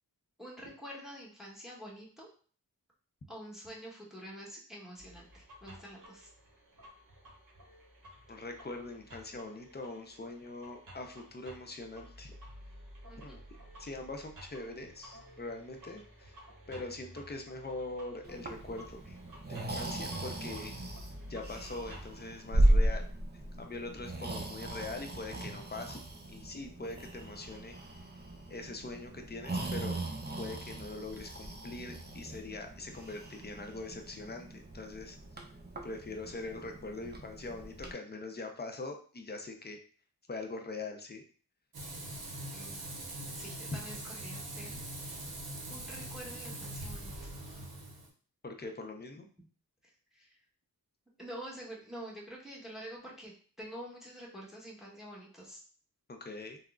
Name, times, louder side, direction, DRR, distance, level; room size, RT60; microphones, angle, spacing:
voice 1, 0.4-2.3 3.3-6.3 13.0-13.4 42.5-42.8 43.3-44.8 45.7-47.1 50.1-50.4 51.2-53.3 53.6-55.6, equal, ahead, -3 dB, 1.0 m, -47 dB
sound 1, 5.0-22.2, equal, 55° right, 1.2 m, -53 dB
voice 2, 8.3-12.3 13.2-13.4 13.8-16.3 16.7-19.2 19.5-20.8 21.3-23.0 23.6-26.0 26.3-27.7 28.5-30.0 30.4-35.2 35.8-39.8 40.3-41.2 48.4-49.3 56.1-56.6, left 2 dB, 25° left, 4 dB, 0.6 m, -42 dB
Breathing, 18.2-37.9, right 1 dB, 25° right, 0.6 m, -36 dB
Frying (food), 41.7-48.1, right 1 dB, 70° right, 0.8 m, -42 dB
3.6 x 2.1 x 2.3 m, 0.43 s
cardioid pair, 40°, 38 cm